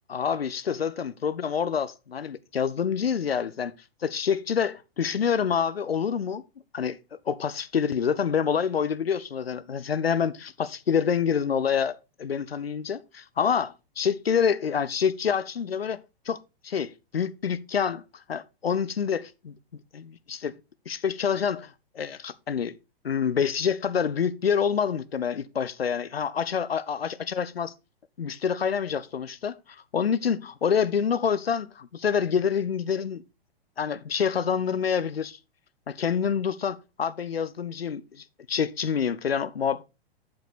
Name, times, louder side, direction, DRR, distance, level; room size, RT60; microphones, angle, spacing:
voice 1, 0.1-3.7 4.0-6.4 6.7-16.0 16.3-16.4 16.6-18.0 18.3-19.6 19.9-20.5 20.9-22.8 23.0-27.7 28.2-29.5 29.9-33.2 33.8-35.4 35.9-39.8, left 7 dB, 75° left, 0.7 m, -27 dB
7.7 x 7.1 x 4.1 m
figure-of-eight pair, 105°, 30 cm